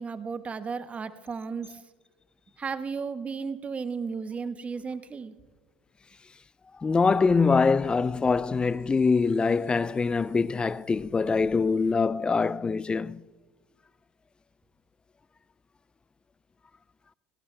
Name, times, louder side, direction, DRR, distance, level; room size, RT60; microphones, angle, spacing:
voice 1, 0.0-1.8 2.6-5.3, right 5 dB, 25° right, 1.1 m, -34 dB
voice 2, 6.8-13.2, left 4 dB, 20° left, 0.4 m, -24 dB
sound 1, 6.9-11.9, right 2 dB, 60° right, 4.1 m, -56 dB
18.0 x 17.5 x 3.3 m
hypercardioid pair, 85°, 5 cm